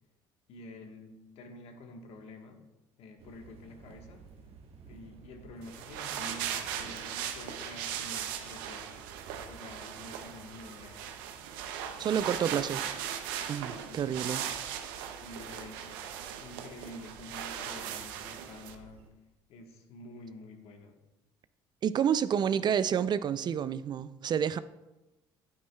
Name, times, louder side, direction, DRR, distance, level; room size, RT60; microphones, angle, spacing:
voice 1, 0.5-2.7 3.0-4.2 4.9-9.1 9.5-11.1 12.0-12.9 13.8-14.1 15.2-19.1 19.5-21.0, left 2 dB, 65° left, 1.3 m, -49 dB
sound 1, 3.2-19.1, right 5 dB, 65° right, 1.1 m, -55 dB
sound 2, 5.6-18.7, right 9 dB, 90° right, 0.6 m, -38 dB
voice 2, 12.0-12.8 13.5-14.4 21.8-24.6, right 8 dB, 40° right, 0.4 m, -29 dB
9.4 x 8.7 x 2.3 m
supercardioid pair, 80°, 11 cm